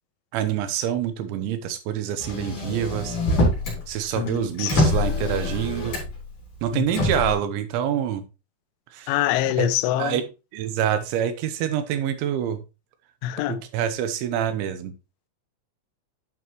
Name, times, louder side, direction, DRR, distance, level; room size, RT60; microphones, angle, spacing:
voice 1, 0.3-3.2 3.9-6.0 6.6-8.2 8.9-9.2 9.6-9.7 10.0-10.2 10.5-12.6 13.5-14.9, right 9 dB, 85° right, 3.1 m, -26 dB
Motor vehicle (road), 2.2-3.8 4.1-6.3 6.9-7.3, left 1 dB, 45° left, 4.5 m, -24 dB
voice 2, 4.2-4.7 6.7-6.9 9.1-10.2 13.2-13.6, left 13 dB, 85° left, 3.0 m, -25 dB
9.5 x 5.9 x 2.9 m
omnidirectional pair, 5.3 m